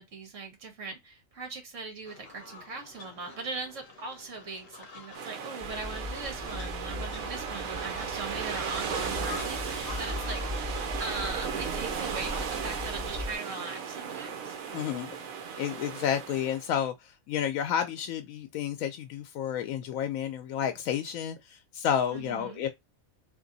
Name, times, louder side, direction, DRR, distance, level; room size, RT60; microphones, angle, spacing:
voice 1, 0.0-10.7 11.0-14.5 22.1-22.6, right 3 dB, 65° right, 1.8 m, -40 dB
sound 1, 2.0-12.5, left 4 dB, 50° left, 0.9 m, -47 dB
sound 2, 5.1-16.7, right 6 dB, 85° right, 1.3 m, -36 dB
sound 3, 5.6-13.3, left 1 dB, 20° right, 0.4 m, -39 dB
voice 2, 14.7-15.1 15.6-22.7, left 9 dB, 85° left, 1.0 m, -31 dB
3.6 x 2.9 x 3.9 m
omnidirectional pair, 1.4 m